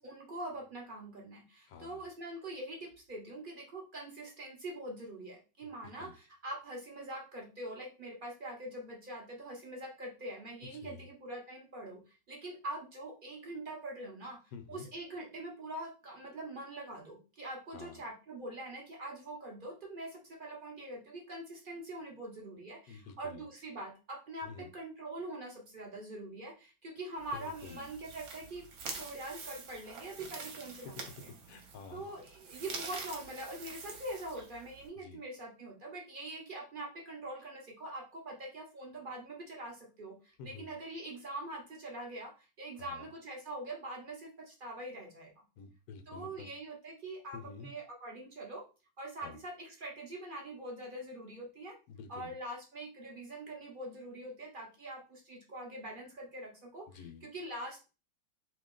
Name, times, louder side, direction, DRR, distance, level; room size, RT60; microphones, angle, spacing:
voice 1, 0.0-14.4 14.7-31.1 31.9-45.3 46.1-48.6 49.0-51.8 52.1-57.9, right 1 dB, 50° right, 0 dB, 0.6 m, -44 dB
voice 2, 1.7-2.1 5.6-6.1 10.7-11.1 14.5-14.9 17.7-18.0 22.9-23.5 24.4-24.7 27.3-27.9 31.3-32.1 34.9-35.2 40.4-40.7 42.8-43.1 45.6-46.5 47.3-47.7 49.2-49.4 51.9-52.3 56.9-57.3, left 5 dB, 70° left, 8 dB, 1.0 m, -49 dB
sound 1, 27.2-34.9, right 4 dB, 65° right, 1.2 m, -46 dB
2.9 x 2.8 x 3.7 m, 0.32 s
omnidirectional pair, 1.8 m